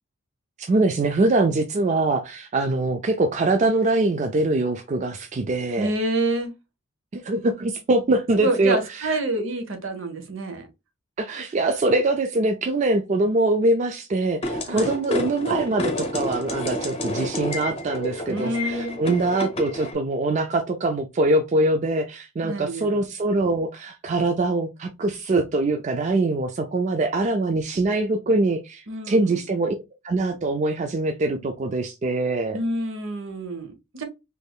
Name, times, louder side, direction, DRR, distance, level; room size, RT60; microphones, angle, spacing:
voice 1, 0.7-5.9 7.2-9.2 11.2-29.8 30.0-32.6, right 2 dB, 35° right, 0.3 m, -23 dB
voice 2, 5.8-6.5 8.4-10.7 14.7-14.9 18.3-19.0 22.4-23.0 28.9-29.4 32.5-34.0, right 1 dB, 65° right, 0.9 m, -27 dB
sound 1, 14.4-19.9, left 1 dB, 25° left, 0.8 m, -29 dB
3.5 x 3.1 x 2.2 m
head